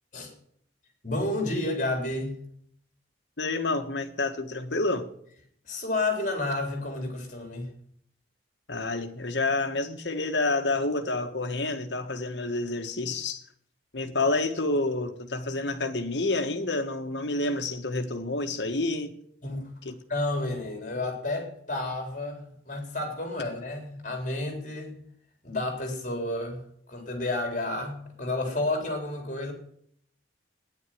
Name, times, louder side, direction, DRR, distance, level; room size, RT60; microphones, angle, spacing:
voice 1, 1.0-2.4 5.6-7.7 19.4-19.7 20.1-25.0 25.4-26.6 26.9-29.5, left 2 dB, 45° left, 4.1 m, -31 dB
voice 2, 3.4-5.1 8.7-13.4 13.9-19.1 19.8-19.9, left 2 dB, 75° left, 1.6 m, -29 dB
13.5 x 10.5 x 9.4 m
head